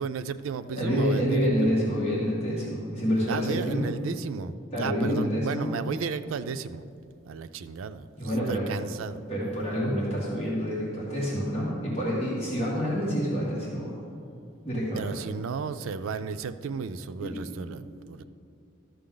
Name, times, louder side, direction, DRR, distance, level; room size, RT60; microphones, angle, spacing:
voice 1, 0.0-1.5 3.3-6.8 7.3-9.3 14.9-18.2, right 5 dB, 90° right, 11 dB, 0.4 m, -34 dB
voice 2, 0.7-3.9 4.7-5.7 8.2-8.7 9.3-14.0 14.6-15.1 17.2-17.4, equal, 30° left, -7 dB, 1.9 m, -27 dB
13.0 x 6.8 x 3.9 m, 2.5 s
head